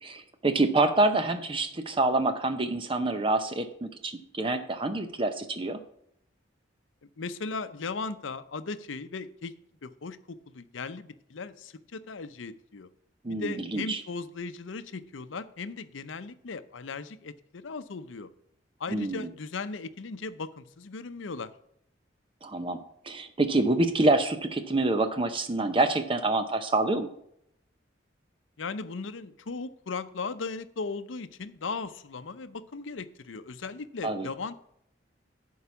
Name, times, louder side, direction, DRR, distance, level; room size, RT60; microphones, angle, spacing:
voice 1, 0.0-5.8 13.2-14.0 18.9-19.3 22.4-22.8 23.0-27.1 34.0-34.3, right 2 dB, 30° right, 9 dB, 0.6 m, -26 dB
voice 2, 7.2-9.5 9.8-10.2 10.5-12.9 13.3-17.3 17.6-18.3 18.8-21.5 28.6-34.5, left 4 dB, 85° left, 13 dB, 0.7 m, -37 dB
11.0 x 4.7 x 7.0 m, 0.72 s
head